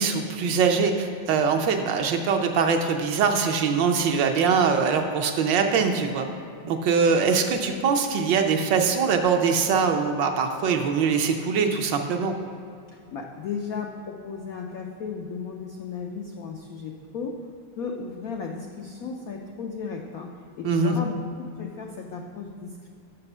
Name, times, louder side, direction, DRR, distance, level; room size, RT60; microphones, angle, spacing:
voice 1, 0.0-6.3 6.6-12.3 20.6-21.0, right 5 dB, 70° right, 5 dB, 1.2 m, -22 dB
voice 2, 13.1-17.4 17.8-22.9, left 5 dB, 85° left, 1 dB, 0.7 m, -35 dB
6.6 x 6.1 x 5.9 m, 2.5 s
omnidirectional pair, 2.2 m